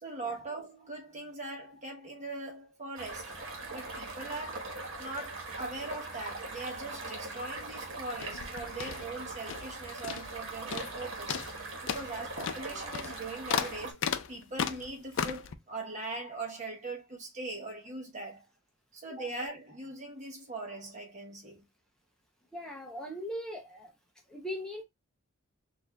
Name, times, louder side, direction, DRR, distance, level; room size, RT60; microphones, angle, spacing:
voice 1, 0.0-3.3 3.7-4.7 5.0-11.4 11.9-18.5 18.9-21.6, right 2 dB, 35° right, 1.0 m, -41 dB
sound 1, 3.0-13.9, right 3 dB, 65° right, 1.3 m, -41 dB
sound 2, 8.1-9.8 10.0-10.4 10.7-11.0 11.3-15.5, left 7 dB, 60° left, 0.4 m, -35 dB
voice 2, 22.5-23.9 24.3-24.8, equal, 5° left, 0.6 m, -39 dB
6.3 x 2.6 x 2.3 m
head